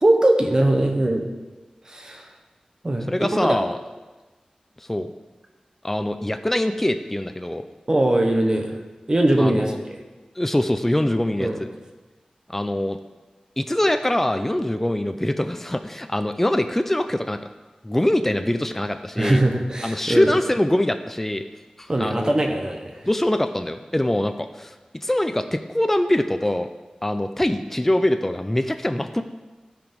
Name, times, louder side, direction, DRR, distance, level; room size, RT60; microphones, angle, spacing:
voice 1, 0.0-1.3 1.9-2.3 2.8-3.1 3.4-3.6 7.9-8.8 9.1-10.0 11.4-11.6 19.2-20.3 21.9-23.0, right 1 dB, 30° right, 3 dB, 1.0 m, -21 dB
voice 2, 3.1-3.8 4.8-5.1 5.8-7.6 9.4-9.8 10.4-11.7 12.5-13.0 13.6-17.4 17.8-19.4 19.8-21.4 21.8-22.3 23.0-24.8 25.0-26.7 27.0-29.2, left 1 dB, 10° left, 8 dB, 0.4 m, -23 dB
12.5 x 5.0 x 5.2 m, 1.2 s
wide cardioid pair, 90°, 2 cm